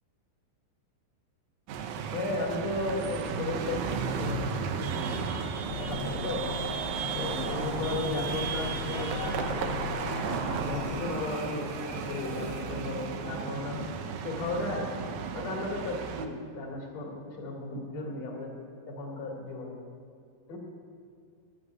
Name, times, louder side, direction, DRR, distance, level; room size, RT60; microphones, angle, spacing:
sound 1, 1.7-16.3, right 6 dB, 85° right, 2.0 m, -34 dB
voice 1, 2.1-4.4 4.8-5.2 5.7-6.5 7.1-9.8 10.6-13.8 14.2-14.9 15.3-18.6 18.9-19.8 20.5-20.6, left 2 dB, 40° left, -1 dB, 3.5 m, -35 dB
sound 2, 5.7-11.6, left 7 dB, 90° left, 3.0 m, -38 dB
sound 3, 7.1-12.6, left 6 dB, 75° left, 2.1 m, -46 dB
13.5 x 8.8 x 9.3 m, 2.2 s
omnidirectional pair, 5.2 m